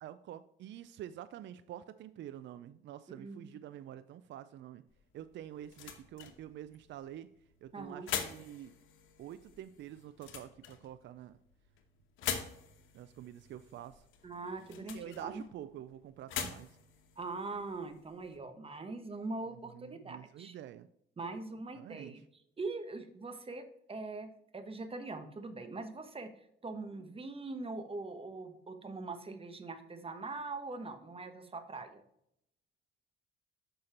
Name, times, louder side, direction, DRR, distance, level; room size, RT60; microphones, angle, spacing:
voice 1, 0.0-4.8 5.1-7.3 7.6-8.7 9.2-11.4 12.9-14.0 14.9-16.8 19.5-20.9 21.7-22.1, right 11 dB, 65° right, 13 dB, 0.4 m, -47 dB
voice 2, 3.2-3.6 7.7-8.1 14.2-15.4 17.2-20.5 21.2-22.2 22.6-26.3 26.6-32.0, right 3 dB, 30° right, 8 dB, 1.1 m, -42 dB
sound 1, 4.9-18.4, left 8 dB, 90° left, 1.1 m, -45 dB
6.6 x 5.5 x 4.3 m, 0.75 s
cardioid pair, 90°, 20 cm